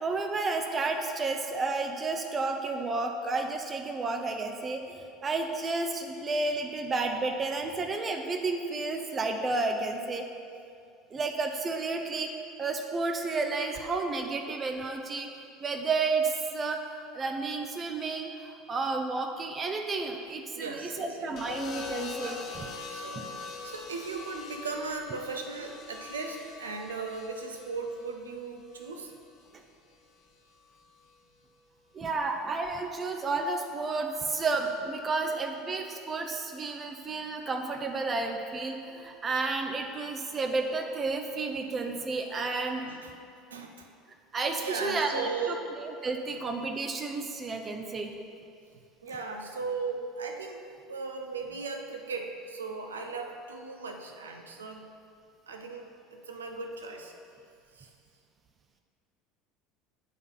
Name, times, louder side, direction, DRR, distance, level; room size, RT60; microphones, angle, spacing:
voice 1, 0.0-4.8 5.2-10.3 11.1-12.3 12.6-15.3 15.6-16.8 17.1-22.7 23.2-23.3 31.9-42.9 44.3-48.1, right 3 dB, 25° right, 4 dB, 0.6 m, -31 dB
voice 2, 20.5-21.4 22.2-22.6 22.9-29.1 42.8-43.1 43.5-43.9 44.6-45.7 46.3-46.4 49.0-54.9 55.5-57.1 57.8-57.9, right 4 dB, 75° right, 3 dB, 0.7 m, -37 dB
sound 1, 21.4-29.5 30.7-31.1, left 4 dB, 45° left, 0.9 m, -43 dB
8.2 x 4.0 x 5.7 m, 2.4 s
figure-of-eight pair, 70°, 0 cm